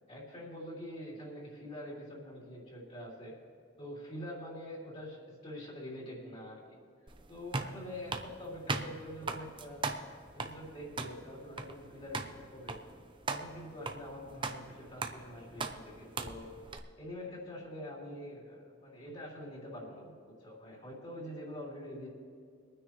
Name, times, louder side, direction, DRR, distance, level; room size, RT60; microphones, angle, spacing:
voice 1, 0.1-3.3 3.8-6.6 7.3-9.8 10.3-12.8 13.3-16.5 17.0-22.1, left 1 dB, 30° left, -5 dB, 3.6 m, -45 dB
sound 1, 7.1-16.8, right 3 dB, 25° right, 0.7 m, -40 dB
24.0 x 9.6 x 3.1 m, 2.3 s
head